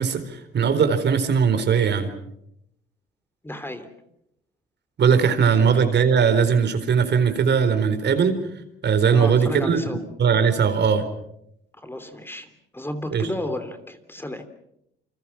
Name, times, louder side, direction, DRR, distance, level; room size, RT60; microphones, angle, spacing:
voice 1, 0.0-2.1 5.0-8.4 8.8-9.9 10.2-11.0 13.1-13.3, right 6 dB, 60° right, 9 dB, 4.2 m, -19 dB
voice 2, 3.4-3.9 5.5-5.6 9.1-10.0 11.7-14.4, left 1 dB, 10° left, 9 dB, 3.0 m, -33 dB
28.5 x 26.0 x 5.9 m, 0.76 s
cardioid pair, 90°, 20 cm